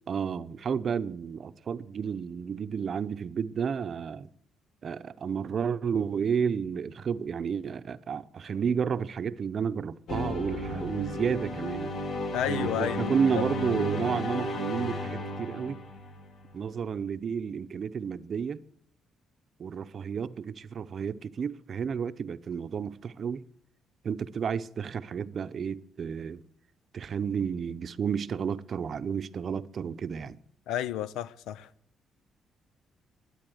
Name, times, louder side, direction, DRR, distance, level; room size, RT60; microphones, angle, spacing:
voice 1, 0.1-4.3 4.8-11.9 12.5-15.8 16.5-18.6 19.6-23.4 24.0-26.4 26.9-30.4, right 7 dB, 50° right, 0.7 m, -31 dB
sound 1, 10.1-16.5, left 1 dB, 65° left, 2.2 m, -33 dB
voice 2, 12.3-13.4 30.7-31.7, left 11 dB, 90° left, 0.6 m, -32 dB
12.0 x 10.0 x 7.9 m
cardioid pair, 90°, 0 cm